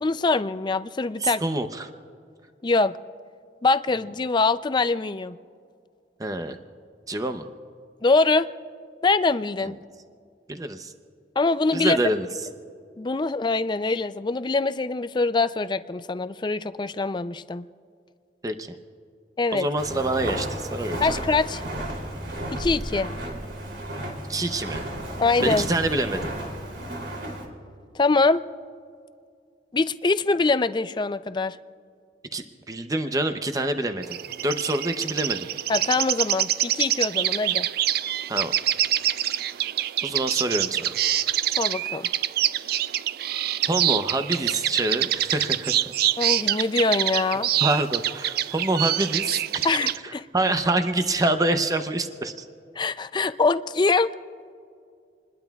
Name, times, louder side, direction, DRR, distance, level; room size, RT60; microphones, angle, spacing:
voice 1, 0.0-1.4 2.6-2.9 3.6-5.4 8.0-8.5 9.0-9.8 11.4-12.0 13.0-17.6 19.4-19.7 21.0-21.6 22.5-23.1 25.2-25.7 27.9-28.4 29.7-31.6 35.7-37.7 41.6-42.1 46.2-47.5 49.6-50.3 52.8-54.1, left 3 dB, 25° left, 13 dB, 0.4 m, -23 dB
voice 2, 1.2-1.9 6.2-6.6 7.1-7.5 9.6-9.7 10.5-10.9 11.7-12.3 18.4-18.7 19.5-21.0 24.3-24.9 25.4-26.3 32.3-34.2 34.4-35.5 38.3-38.5 40.0-41.0 43.7-45.7 47.2-49.7 50.0-52.5, right 2 dB, 20° right, 7 dB, 0.7 m, -26 dB
Walk footsteps, 19.8-27.5, right 1 dB, 70° right, 3.1 m, -33 dB
sound 1, 34.0-50.0, right 12 dB, 55° right, 0.4 m, -26 dB
28.0 x 21.0 x 2.4 m, 2.3 s
head